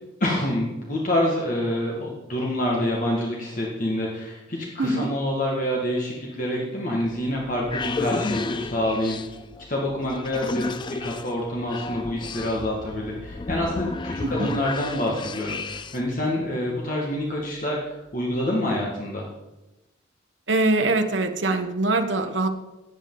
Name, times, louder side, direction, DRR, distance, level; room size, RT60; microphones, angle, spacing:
voice 1, 0.2-9.4 9.7-19.3, left 1 dB, 40° left, -3 dB, 1.8 m, -27 dB
voice 2, 4.8-5.1 14.2-14.5 20.5-22.5, right 2 dB, 65° right, 5 dB, 1.2 m, -23 dB
sound 1, 7.3-16.1, left 3 dB, 25° left, 0.3 m, -33 dB
17.5 x 8.3 x 3.9 m, 1.0 s
head